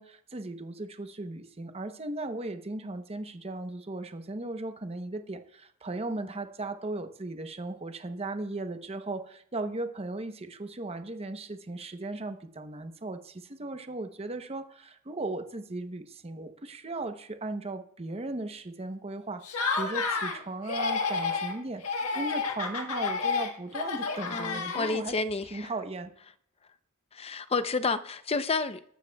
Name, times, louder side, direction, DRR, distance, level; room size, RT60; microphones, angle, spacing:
voice 1, 0.0-25.2 25.5-26.1, right 2 dB, 30° right, 0.8 m, -37 dB
Laughter, 19.4-20.4 20.7-21.5 21.8-25.2, left 4 dB, 90° left, 1.5 m, -30 dB
voice 2, 24.3-25.7 27.1-28.9, left 4 dB, 30° left, 0.6 m, -30 dB
20.0 x 12.5 x 2.3 m
head